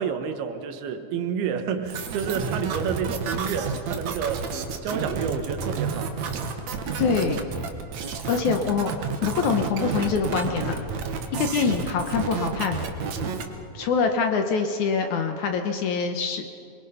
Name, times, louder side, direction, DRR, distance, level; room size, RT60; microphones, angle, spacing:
voice 1, 0.0-4.5 4.8-6.2, right 7 dB, 90° right, 7 dB, 3.2 m, -29 dB
sound 1, 1.8-13.4, right 5 dB, 60° right, 2.2 m, -30 dB
voice 2, 7.0-7.5 8.3-8.9 9.2-10.8 11.3-12.8 13.7-16.4, left 5 dB, 65° left, 5 dB, 2.1 m, -24 dB
23.5 x 23.0 x 5.7 m, 2.5 s
omnidirectional pair, 4.4 m